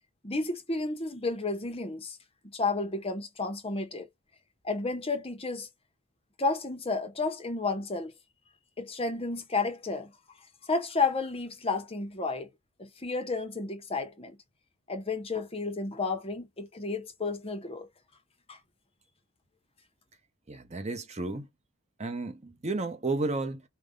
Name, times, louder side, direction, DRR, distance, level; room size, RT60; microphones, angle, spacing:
voice 1, 0.2-2.2 2.4-4.1 4.6-5.7 6.4-8.1 8.8-10.1 10.6-12.5 12.8-14.4 14.9-17.9 18.5-18.6, left 3 dB, 25° left, 0.9 m, -32 dB
voice 2, 20.5-21.5 22.0-23.6, right 2 dB, 30° right, 0.8 m, -32 dB
5.0 x 2.3 x 3.7 m
head